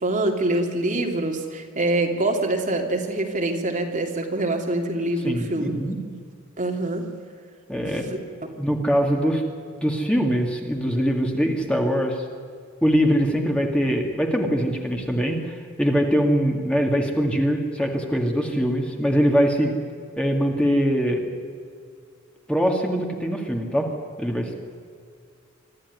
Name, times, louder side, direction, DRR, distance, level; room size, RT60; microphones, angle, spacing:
voice 1, 0.0-5.7 6.6-7.0, right 2 dB, 40° right, 2 dB, 2.8 m, -25 dB
voice 2, 5.2-6.0 7.7-8.2 8.6-9.4 9.8-12.2 12.8-19.7 20.2-21.2 22.5-23.9 24.2-24.6, equal, 5° left, 1 dB, 2.2 m, -22 dB
24.5 x 14.0 x 9.7 m, 2.2 s
head